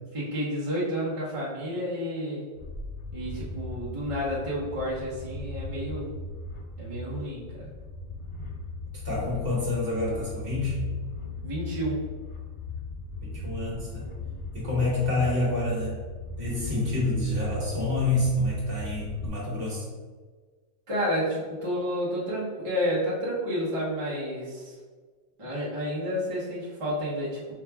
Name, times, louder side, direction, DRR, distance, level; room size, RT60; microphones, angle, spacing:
voice 1, 0.1-2.5 3.1-6.1 6.8-7.7 11.4-12.0 20.9-24.8 25.4-27.5, equal, 25° right, -8 dB, 1.0 m, -30 dB
sound 1, 2.6-19.3, left 3 dB, 40° left, 0.4 m, -38 dB
voice 2, 9.0-10.8 13.2-14.1 14.5-16.0 16.4-19.9, left 2 dB, 50° right, -5 dB, 1.3 m, -28 dB
4.8 x 2.4 x 3.4 m, 1.5 s
omnidirectional pair, 1.3 m